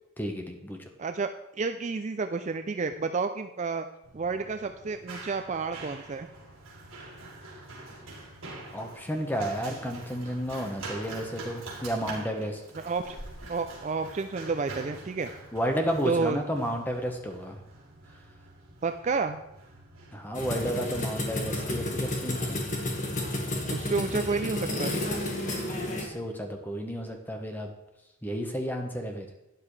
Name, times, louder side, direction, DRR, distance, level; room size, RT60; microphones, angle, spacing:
voice 1, 0.2-0.8 8.7-12.6 15.5-17.6 20.1-22.6 25.8-27.7 28.2-29.3, equal, 10° left, 3 dB, 1.2 m, -32 dB
voice 2, 1.0-3.8 4.1-6.3 12.8-13.2 13.5-15.3 16.0-16.4 18.8-19.4 23.7-24.9, right 4 dB, 35° right, 8 dB, 0.4 m, -30 dB
Run, 4.0-21.3, right 2 dB, 65° right, 3.2 m, -45 dB
sound 1, 20.3-26.0, left 1 dB, 35° left, 1.6 m, -31 dB
12.0 x 9.6 x 3.3 m, 0.90 s
head